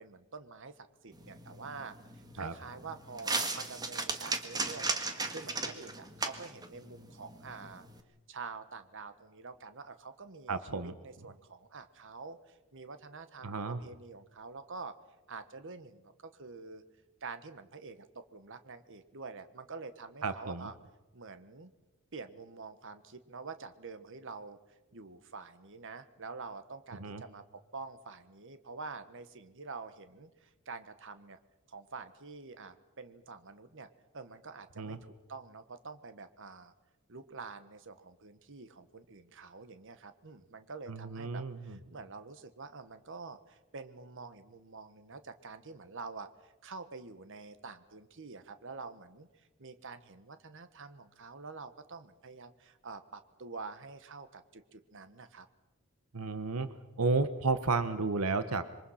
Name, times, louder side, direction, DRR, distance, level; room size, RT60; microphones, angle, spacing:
voice 1, 0.0-5.0 5.3-7.9 8.3-14.9 15.3-16.8 17.2-20.7 21.1-21.7 22.1-24.6 24.9-31.4 31.7-33.9 34.1-36.7 37.1-49.3 49.6-55.5, right 4 dB, 60° right, 11 dB, 1.4 m, -47 dB
sound 1, 1.1-8.0, right 3 dB, 20° right, 1.8 m, -37 dB
voice 2, 10.5-10.9 13.4-13.8 20.2-20.7 27.0-27.2 34.8-35.0 40.9-41.8 56.1-56.7 57.0-58.7, right 3 dB, 85° right, 11 dB, 1.1 m, -32 dB
27.0 x 23.5 x 5.8 m, 1.1 s
head